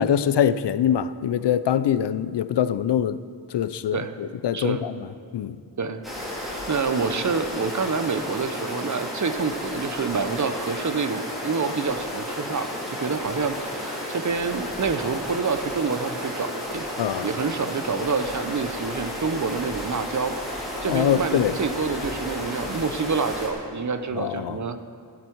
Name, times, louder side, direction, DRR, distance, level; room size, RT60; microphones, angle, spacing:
voice 1, 0.0-3.2 3.5-4.0 4.4-4.9 5.3-5.6 17.0-17.3 20.9-21.5 24.2-24.6, left 9 dB, 80° left, 0.5 m, -23 dB
voice 2, 4.5-4.9 5.8-6.0 6.4-16.9 17.2-20.4 20.8-24.8, right 5 dB, 45° right, 0.7 m, -27 dB
sound 1, 6.0-23.5, left 1 dB, ahead, 3.5 m, -32 dB
13.5 x 12.0 x 4.6 m
wide cardioid pair, 100°, 41 cm